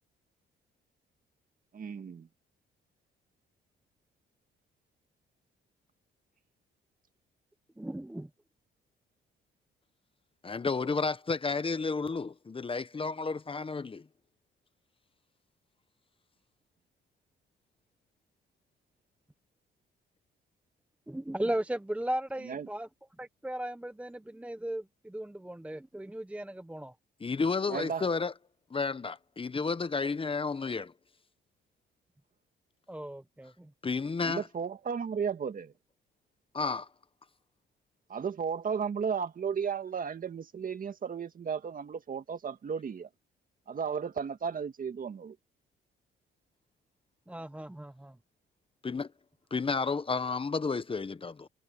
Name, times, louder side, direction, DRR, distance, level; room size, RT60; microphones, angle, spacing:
voice 1, 1.7-2.3 22.5-22.7 27.7-28.1 34.2-35.7 38.1-43.1 43.7-45.4, right 6 dB, 45° right, 1.9 m, -34 dB
voice 2, 7.8-8.3 21.1-22.9 23.2-26.9 32.9-33.7 47.3-48.2, right 1 dB, 5° right, 0.8 m, -36 dB
voice 3, 10.4-14.0 27.2-28.3 28.7-30.9 33.8-34.5 36.5-36.9 48.8-49.1 49.5-51.5, left 4 dB, 25° left, 1.0 m, -31 dB
cardioid pair, 90°, 20 cm